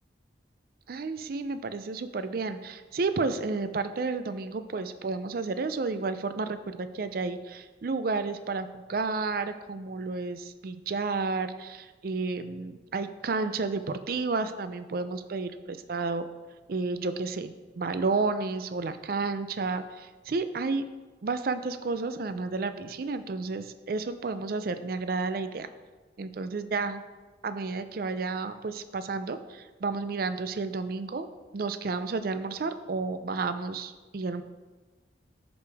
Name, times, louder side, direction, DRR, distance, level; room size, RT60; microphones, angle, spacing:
voice 1, 0.9-16.3 16.7-20.8 21.2-25.7 26.2-27.0 27.4-31.3 31.5-34.4, right 4 dB, 55° right, 10 dB, 0.4 m, -31 dB
13.0 x 5.1 x 3.4 m, 1.3 s
head